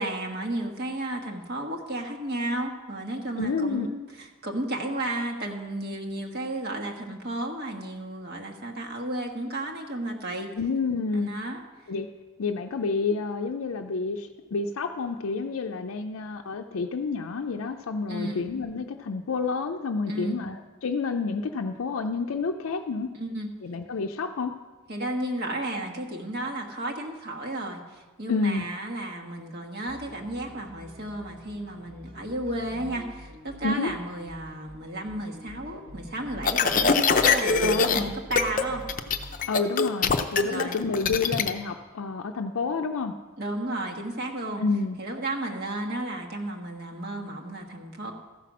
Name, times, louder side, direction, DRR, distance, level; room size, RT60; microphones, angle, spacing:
voice 1, 0.0-10.5 11.1-11.6 18.1-18.5 20.1-20.4 23.1-23.5 24.9-38.9 40.4-40.8 43.4-44.6 45.0-48.1, right 1 dB, 50° right, 1 dB, 1.3 m, -33 dB
voice 2, 3.4-3.9 10.6-11.3 11.9-12.1 12.4-23.1 23.6-24.5 28.3-28.7 33.6-33.9 37.6-38.2 39.5-43.1 44.6-45.0, left 4 dB, 90° left, 4 dB, 0.5 m, -29 dB
sound 1, 29.9-39.5, equal, 70° right, 2.6 m, -45 dB
sound 2, 36.4-38.0 38.3-38.6 38.9-41.5, left 5 dB, 40° left, 0.6 m, -22 dB
14.0 x 5.9 x 6.1 m, 1.3 s
head